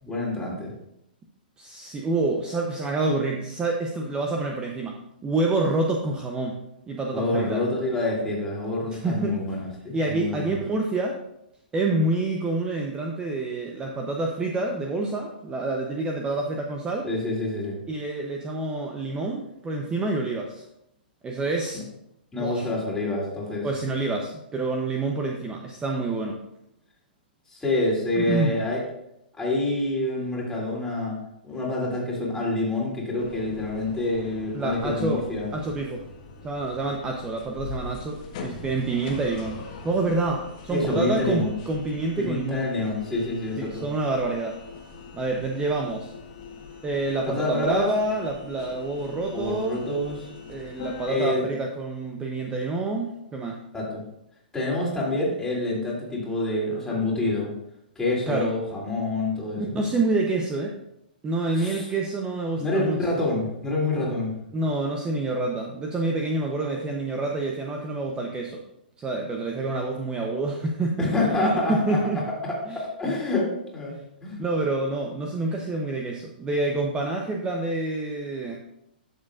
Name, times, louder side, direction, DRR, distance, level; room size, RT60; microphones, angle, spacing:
voice 1, 0.0-0.7 7.1-10.6 17.0-17.8 22.3-23.7 27.5-28.8 29.4-31.2 31.4-35.5 40.7-41.5 42.2-43.8 47.3-47.9 49.3-50.3 51.1-51.4 53.7-54.0 54.5-57.5 57.9-59.8 61.6-61.9 62.6-64.3 71.0-74.0 74.2-74.4, left 2 dB, 10° left, -4 dB, 2.9 m, -27 dB
voice 2, 1.6-6.6 6.9-7.6 8.9-9.4 9.9-11.2 11.7-17.1 17.9-20.6 21.2-21.8 22.3-22.7 23.6-26.4 28.2-28.6 34.5-35.2 35.5-36.0 36.4-39.6 39.8-42.7 43.6-44.6 45.1-46.1 46.8-49.8 50.5-53.6 58.3-58.5 59.6-60.8 61.2-63.2 64.5-68.6 69.0-72.2 72.7-72.8 73.9-74.0 74.4-78.6, right 2 dB, 15° right, 1 dB, 0.8 m, -27 dB
sound 1, 33.2-51.1, left 4 dB, 50° left, 1.5 m, -42 dB
11.5 x 6.5 x 2.5 m, 0.82 s
hypercardioid pair, 125°, 5 cm